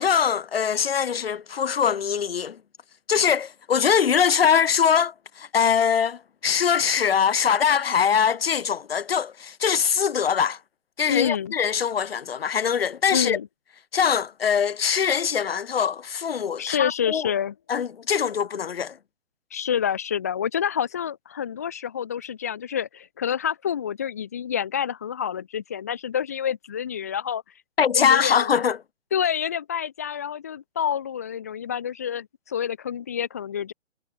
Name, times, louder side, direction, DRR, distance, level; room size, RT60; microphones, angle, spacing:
voice 1, 0.0-2.6 3.1-10.6 11.0-13.4 13.9-17.3 17.7-19.0 27.8-28.8, left 7 dB, 55° left, 1.2 m, -22 dB
voice 2, 11.1-11.5 13.1-13.5 16.6-17.5 19.5-27.4 27.9-28.5 29.1-33.7, left 8 dB, 15° left, 0.5 m, -28 dB
figure-of-eight pair, 135°, 36 cm